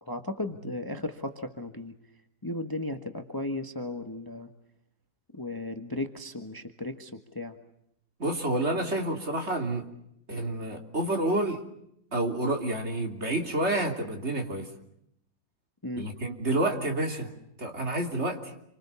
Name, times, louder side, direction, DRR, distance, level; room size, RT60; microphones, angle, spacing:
voice 1, 0.0-1.9 2.4-4.5 5.3-7.6 15.8-16.1, left 1 dB, 15° left, 6 dB, 1.5 m, -35 dB
voice 2, 8.2-9.9 10.3-11.6 12.1-14.7 16.0-17.3 17.6-18.5, right 1 dB, 40° right, 3 dB, 3.4 m, -29 dB
28.0 x 25.5 x 7.0 m, 0.76 s
omnidirectional pair, 1.8 m